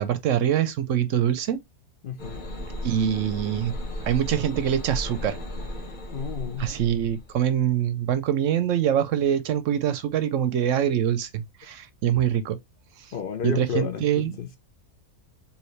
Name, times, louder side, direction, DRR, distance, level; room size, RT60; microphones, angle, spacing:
voice 1, 0.0-1.6 2.8-3.8 4.1-5.4 6.6-12.6 13.4-14.4, right 10 dB, 70° right, 0.9 m, -24 dB
voice 2, 2.0-2.4 6.1-6.7 13.1-14.5, left 7 dB, 60° left, 0.5 m, -31 dB
sound 1, 2.2-7.5, left 1 dB, 35° left, 1.2 m, -35 dB
4.7 x 2.8 x 3.1 m
omnidirectional pair, 1.5 m